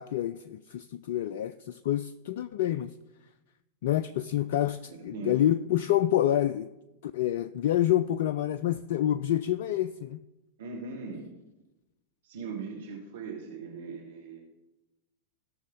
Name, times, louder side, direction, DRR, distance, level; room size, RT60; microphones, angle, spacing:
voice 1, 0.0-2.9 3.8-6.7 7.0-10.2, left 12 dB, 55° left, 14 dB, 0.3 m, -27 dB
voice 2, 4.9-5.3 10.6-11.3 12.2-14.4, right 4 dB, 60° right, -1 dB, 1.6 m, -39 dB
16.5 x 6.4 x 3.8 m, 1.0 s
figure-of-eight pair, 90°, 0 cm